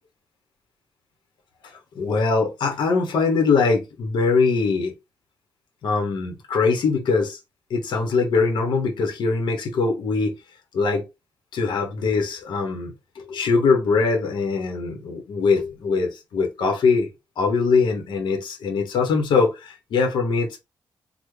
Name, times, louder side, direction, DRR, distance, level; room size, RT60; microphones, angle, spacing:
voice 1, 2.0-4.9 5.8-7.4 7.7-10.3 10.7-11.0 11.5-17.1 17.4-20.6, left 4 dB, 75° left, 0.9 m, -22 dB
3.4 x 2.1 x 3.1 m
cardioid pair, 85°, 8 cm